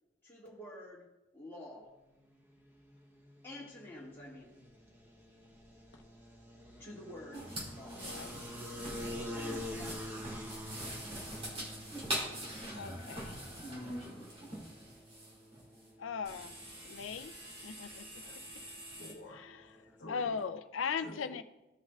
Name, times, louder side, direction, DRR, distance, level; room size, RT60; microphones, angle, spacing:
voice 1, 0.2-1.1 1.3-1.9 3.4-4.5 6.8-7.4 7.7-8.0 9.3-10.1, left 1 dB, 10° left, -7 dB, 2.0 m, -48 dB
sound 1, 2.3-20.4, left 1 dB, 10° right, 0.9 m, -48 dB
sound 2, 7.3-15.8 16.2-19.1, right 1 dB, 30° right, 2.2 m, -43 dB
voice 2, 7.9-8.4 12.7-13.4 16.0-17.3 17.6-18.2 19.3-19.7 20.1-21.4, left 6 dB, 85° left, 10 dB, 0.5 m, -39 dB
voice 3, 18.2-20.4 21.0-21.4, left 1 dB, 60° left, 2 dB, 1.0 m, -52 dB
16.0 x 5.6 x 2.4 m, 0.98 s
head